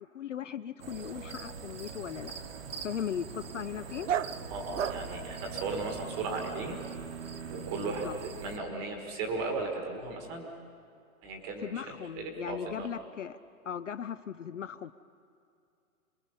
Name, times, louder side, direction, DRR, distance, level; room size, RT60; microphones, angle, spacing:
voice 1, 0.1-2.3 2.8-4.1 8.0-8.1 11.6-13.4 13.6-14.9, left 8 dB, 55° left, 13 dB, 0.5 m, -38 dB
sound 1, 0.8-8.6, right 6 dB, 40° right, 1.2 m, -42 dB
Dog, 1.0-6.3, right 9 dB, 55° right, 0.6 m, -39 dB
voice 2, 4.5-6.8 7.5-10.5 11.2-12.9, right 3 dB, 10° right, 3 dB, 1.3 m, -36 dB
27.0 x 21.0 x 5.5 m, 2.5 s
hypercardioid pair, 175°, 45 cm